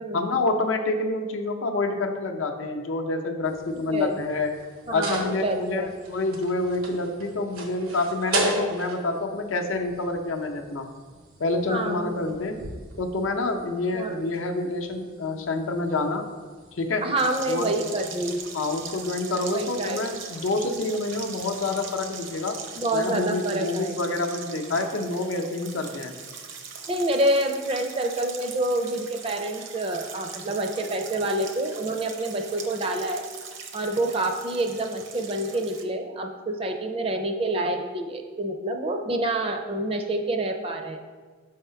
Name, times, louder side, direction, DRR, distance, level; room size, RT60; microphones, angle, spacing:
voice 1, 0.1-4.5 4.9-10.9 11.4-12.6 13.0-16.2 16.8-17.0 17.5-17.8 18.5-22.6 22.9-26.1, left 2 dB, 70° left, 4 dB, 0.6 m, -27 dB
sound 1, 3.4-22.8, right 2 dB, 90° right, 1.0 m, -38 dB
voice 2, 4.9-5.9 11.7-12.2 13.9-14.2 17.0-18.4 19.5-20.0 22.8-23.9 26.9-33.3 33.7-41.0, right 1 dB, 25° right, 4 dB, 0.5 m, -27 dB
sound 2, 17.2-35.8, right 6 dB, 60° right, 0.7 m, -41 dB
5.6 x 3.5 x 5.6 m, 1.5 s
head